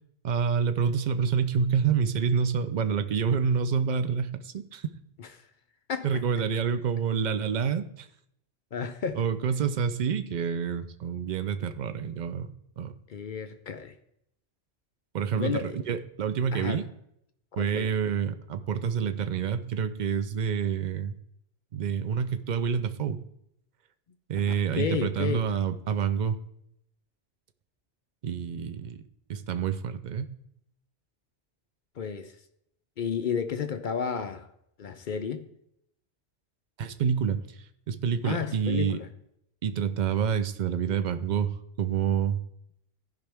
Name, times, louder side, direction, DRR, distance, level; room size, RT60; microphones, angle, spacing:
voice 1, 0.2-4.9 6.0-8.1 9.1-12.5 12.8-12.9 15.1-16.9 17.6-21.1 21.7-23.2 24.3-26.4 28.2-29.0 29.3-30.3 36.8-37.4 37.9-39.0 39.6-41.5 41.8-42.4, right 7 dB, 50° right, 0.6 m, -27 dB
voice 2, 5.9-6.2 8.7-9.2 13.1-13.9 15.4-15.8 16.5-16.8 17.5-17.9 24.7-25.5 32.0-32.3 33.0-34.5 34.8-35.4 38.2-39.1, left 6 dB, 55° left, 0.6 m, -32 dB
15.0 x 5.2 x 3.4 m
omnidirectional pair, 1.1 m